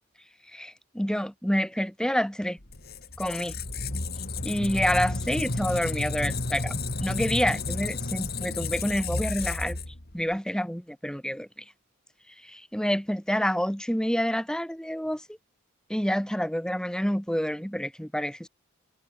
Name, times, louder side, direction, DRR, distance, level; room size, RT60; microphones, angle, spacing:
voice 1, 0.5-2.6 3.2-3.5 4.4-9.8 10.1-11.5 12.4-15.4 15.9-18.5, equal, 5° left, 2.1 m, -28 dB
Squeak, 2.6-10.3, left 3 dB, 50° left, 2.9 m, -32 dB
head